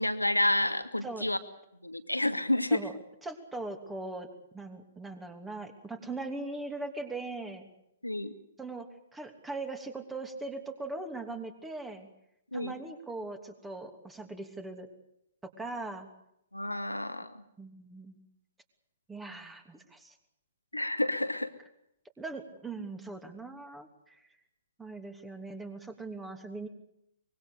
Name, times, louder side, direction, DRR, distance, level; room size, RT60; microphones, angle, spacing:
voice 1, 0.0-1.4 1.8-2.8 8.0-8.3 12.5-12.7 16.5-17.4 20.7-21.5, left 1 dB, 85° left, 9 dB, 2.3 m, -29 dB
voice 2, 3.2-4.3 4.5-7.7 8.6-12.1 12.5-14.9 15.4-16.1 17.6-18.2 19.1-20.2 22.2-24.3 24.8-26.7, right 2 dB, 10° right, 7 dB, 2.9 m, -40 dB
24.5 x 22.5 x 6.8 m, 0.81 s
figure-of-eight pair, 120°, 0 cm